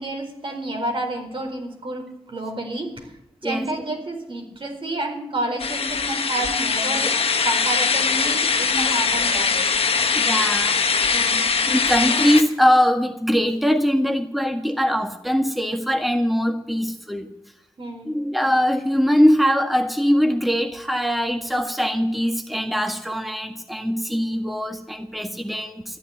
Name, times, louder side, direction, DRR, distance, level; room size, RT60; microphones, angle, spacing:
voice 1, 0.0-3.1 3.4-9.6 11.1-11.5 17.8-18.1, right 1 dB, 60° right, 3 dB, 4.3 m, -30 dB
sound 1, 5.6-12.4, left 5 dB, 80° left, 1.2 m, -21 dB
voice 2, 10.1-10.8 11.7-17.3 18.1-26.0, equal, ahead, 5 dB, 1.7 m, -21 dB
13.5 x 9.8 x 9.2 m, 0.81 s
cardioid pair, 45°, 10 cm